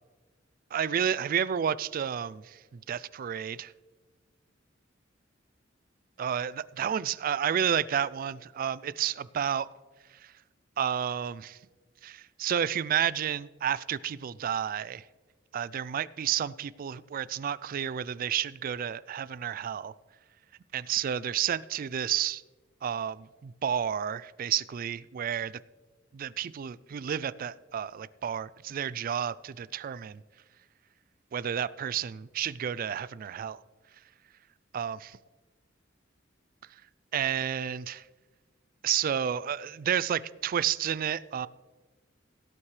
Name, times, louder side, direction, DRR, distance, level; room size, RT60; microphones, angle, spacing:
voice 1, 0.7-3.7 6.2-9.7 10.2-10.3 10.8-11.6 12.0-15.0 15.5-19.9 20.7-22.4 22.8-25.6 26.1-30.2 31.3-33.6 34.7-35.2 37.1-38.0 38.8-41.5, right 9 dB, 45° right, 19 dB, 0.3 m, -31 dB
17.5 x 8.6 x 3.2 m, 1.3 s
head